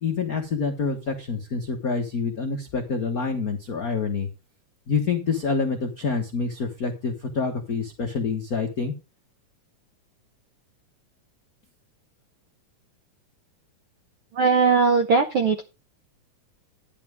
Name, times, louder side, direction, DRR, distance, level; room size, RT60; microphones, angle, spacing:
voice 1, 0.0-4.3 4.9-8.9, left 4 dB, 55° left, 3 dB, 0.9 m, -27 dB
voice 2, 14.3-15.6, right 5 dB, 70° right, 6 dB, 1.2 m, -19 dB
12.0 x 10.0 x 3.5 m, 0.29 s
omnidirectional pair, 3.5 m